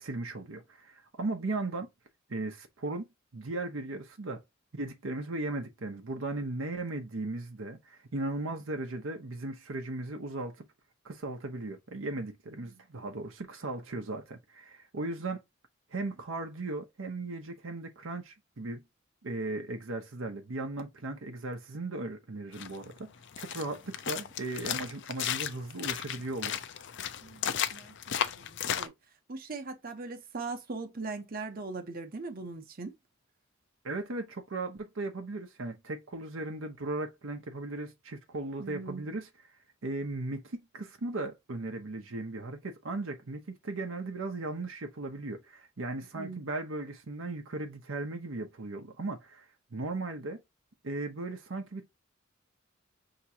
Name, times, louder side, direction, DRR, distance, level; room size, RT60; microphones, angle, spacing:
voice 1, 0.0-1.9 2.3-3.1 3.3-4.4 4.7-10.7 11.0-15.4 15.9-18.8 19.2-23.1 23.4-26.7 33.8-39.3 39.8-50.4 50.8-51.9, right 2 dB, 75° right, 0.8 m, -37 dB
sound 1, 22.5-28.9, left 9 dB, 60° left, 0.5 m, -35 dB
voice 2, 27.2-28.9 29.3-32.9 38.6-39.0 46.1-46.4, right 3 dB, 45° right, 0.9 m, -40 dB
5.9 x 3.0 x 2.7 m
head